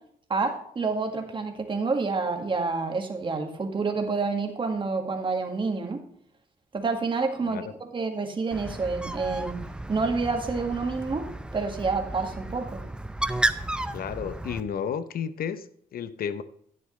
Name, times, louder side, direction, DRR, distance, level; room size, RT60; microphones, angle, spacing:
voice 1, 0.3-6.0 6.7-9.6 9.9-12.8, right 4 dB, 30° right, 1.8 m, -28 dB
Bird, 8.5-14.6, right 1 dB, 5° right, 0.6 m, -33 dB
voice 2, 13.9-15.7 15.9-16.4, left 7 dB, 70° left, 0.7 m, -32 dB
11.5 x 9.6 x 3.2 m
wide cardioid pair, 135°, 16 cm